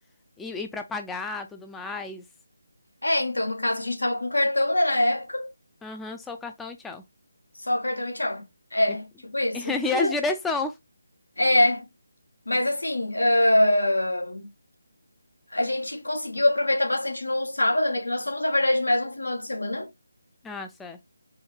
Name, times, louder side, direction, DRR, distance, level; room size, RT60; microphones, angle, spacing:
voice 1, 0.4-2.2 5.8-7.0 9.5-10.7 20.4-21.0, left 3 dB, 5° left, 0.4 m, -30 dB
voice 2, 3.0-5.5 7.6-8.4 8.7-10.1 11.4-11.9 12.5-14.5 15.5-19.9, left 1 dB, 85° left, 1.3 m, -24 dB
4.6 x 2.2 x 3.2 m
figure-of-eight pair, 155°, 0 cm